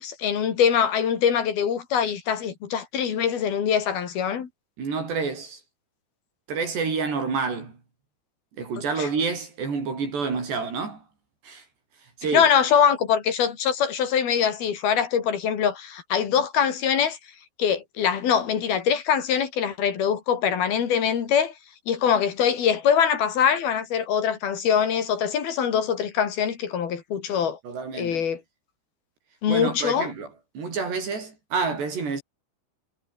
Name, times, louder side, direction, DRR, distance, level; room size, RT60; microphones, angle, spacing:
voice 1, 0.0-4.5 9.0-9.1 12.3-17.2 17.6-21.5 21.9-27.6 27.9-28.4 29.4-30.1, left 8 dB, 65° left, 4.6 m, -23 dB
voice 2, 4.8-5.6 6.5-7.7 8.6-11.0 11.4-11.6 12.2-12.5 27.6-28.2 29.5-30.3 30.6-32.2, right 5 dB, 80° right, 9.3 m, -28 dB
omnidirectional pair, 4.8 m